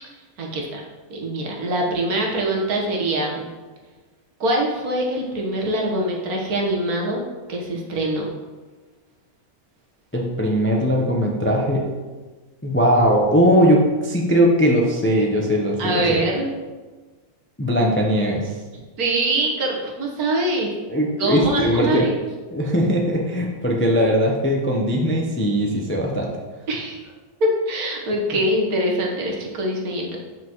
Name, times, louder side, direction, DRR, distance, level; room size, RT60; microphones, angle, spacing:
voice 1, 0.4-0.8 1.1-3.5 4.4-7.2 7.5-8.3 15.8-16.5 19.0-20.7 21.2-22.1 26.7-27.0 27.4-30.2, right 1 dB, 75° right, -1 dB, 1.7 m, -23 dB
voice 2, 10.1-11.8 12.6-16.2 17.6-18.5 20.9-22.0 22.5-26.3, equal, 15° left, -1 dB, 0.4 m, -19 dB
7.4 x 6.0 x 3.0 m, 1.3 s
omnidirectional pair, 1.6 m